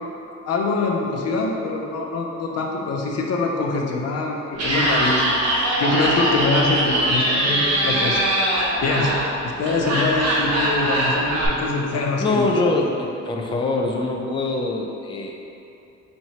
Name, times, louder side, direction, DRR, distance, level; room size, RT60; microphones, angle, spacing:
voice 1, 0.5-8.2 8.8-9.1 9.4-12.7, left 3 dB, 55° left, 0 dB, 0.6 m, -24 dB
Laughter, 4.5-11.5, right 1 dB, 55° right, 1.0 m, -22 dB
voice 2, 12.2-15.4, left 3 dB, 15° left, 1 dB, 0.3 m, -23 dB
4.4 x 3.1 x 2.8 m, 2.8 s
cardioid pair, 90°, 30 cm